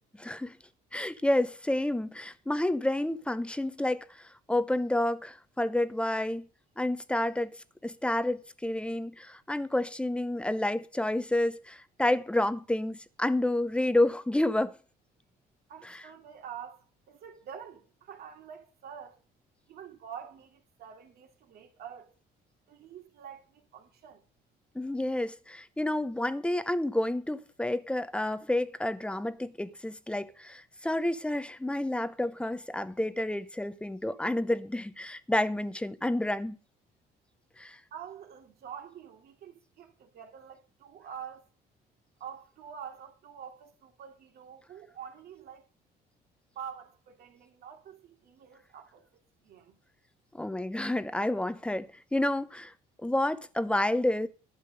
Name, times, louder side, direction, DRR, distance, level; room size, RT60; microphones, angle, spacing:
voice 1, 0.2-0.6 0.9-4.0 4.5-6.5 6.8-7.5 7.8-14.7 24.7-36.6 37.6-37.8 50.3-52.7 53.0-54.3, left 1 dB, 5° left, 0.8 m, -29 dB
voice 2, 15.7-19.2 19.7-22.1 22.7-24.2 37.9-41.4 42.2-45.6 46.5-49.1 49.4-49.7, right 8 dB, 70° right, 2.7 m, -46 dB
12.0 x 7.2 x 6.5 m
cardioid pair, 110°, 17 cm